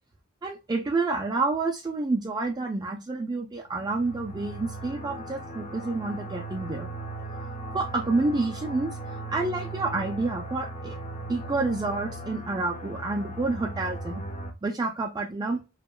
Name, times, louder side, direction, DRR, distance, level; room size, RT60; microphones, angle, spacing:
voice 1, 0.4-6.9 7.7-11.0 11.3-14.2 14.6-15.6, right 3 dB, 20° right, 0.3 m, -29 dB
sound 1, 3.7-14.5, right 2 dB, 35° left, 0.5 m, -38 dB
2.9 x 2.2 x 2.2 m
head